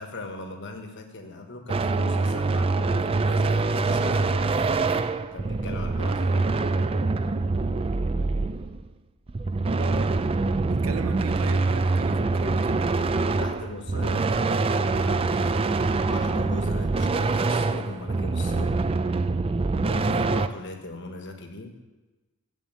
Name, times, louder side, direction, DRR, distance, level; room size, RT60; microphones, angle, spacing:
voice 1, 0.0-4.8 5.3-6.6 13.4-18.8 19.7-21.8, left 2 dB, 55° left, 4 dB, 1.3 m, -40 dB
sound 1, 1.7-8.9 9.3-20.5, right 3 dB, 25° right, 0.4 m, -25 dB
voice 2, 9.6-10.1 10.6-12.9 20.0-20.5, right 2 dB, 70° right, 10 dB, 0.8 m, -36 dB
7.4 x 7.3 x 8.2 m, 1.2 s
head